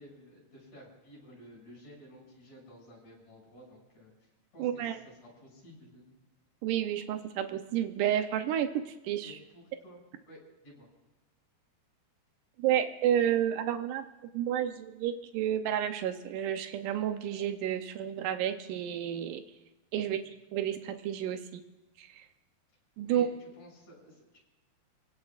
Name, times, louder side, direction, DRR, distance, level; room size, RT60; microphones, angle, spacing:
voice 1, 0.0-6.0 9.2-10.0 10.3-10.4 10.6-10.9 20.0-20.3 23.0-24.4, equal, 50° left, -2 dB, 7.9 m, -53 dB
voice 2, 4.6-5.0 6.6-9.4 12.6-14.1 14.3-19.4 19.9-20.2 20.5-21.6 22.0-22.3 23.0-23.3, right 10 dB, 80° right, 8 dB, 1.8 m, -30 dB
30.0 x 17.5 x 2.5 m, 1.0 s
omnidirectional pair, 4.6 m